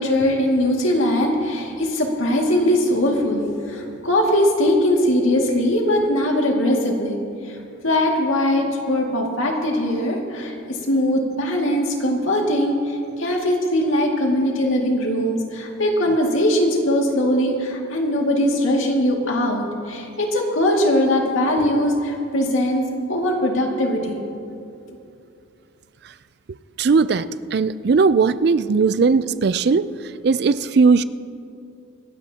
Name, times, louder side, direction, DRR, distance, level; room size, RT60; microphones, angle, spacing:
voice 1, 0.0-7.2 7.8-24.2, left 1 dB, 85° left, 0 dB, 2.2 m, -21 dB
voice 2, 26.8-29.9 30.2-31.0, right 4 dB, 55° right, 15 dB, 0.4 m, -18 dB
25.5 x 13.5 x 2.9 m, 2.6 s
head